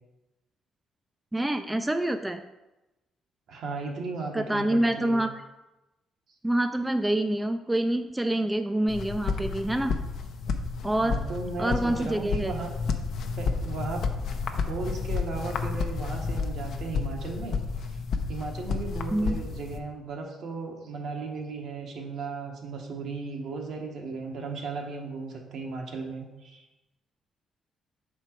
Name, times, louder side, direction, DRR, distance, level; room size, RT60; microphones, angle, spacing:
voice 1, 1.3-2.4 4.3-5.3 6.4-9.9 10.8-11.2 11.6-12.5 19.1-19.4, right 1 dB, 10° right, 7 dB, 0.3 m, -26 dB
voice 2, 3.5-5.2 11.0-12.7 13.3-14.1 14.5-17.6 18.3-26.6, right 4 dB, 70° right, 1 dB, 1.2 m, -36 dB
sound 1, 8.9-19.8, left 5 dB, 65° left, 0.6 m, -31 dB
6.0 x 4.4 x 4.4 m, 1.0 s
cardioid pair, 90°, 0 cm